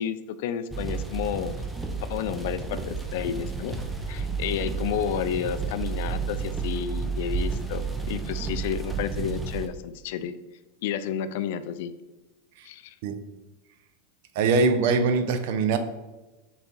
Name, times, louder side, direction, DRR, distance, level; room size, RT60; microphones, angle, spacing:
voice 1, 0.0-1.5 2.1-3.7 4.1-10.3 10.8-11.9 12.6-12.9, left 9 dB, 65° left, 12 dB, 0.3 m, -31 dB
sound 1, 0.7-9.7, right 4 dB, 5° right, 0.5 m, -31 dB
voice 2, 14.4-15.8, right 4 dB, 60° right, 9 dB, 0.5 m, -22 dB
4.1 x 3.5 x 3.7 m, 1.1 s
supercardioid pair, 135°, 0 cm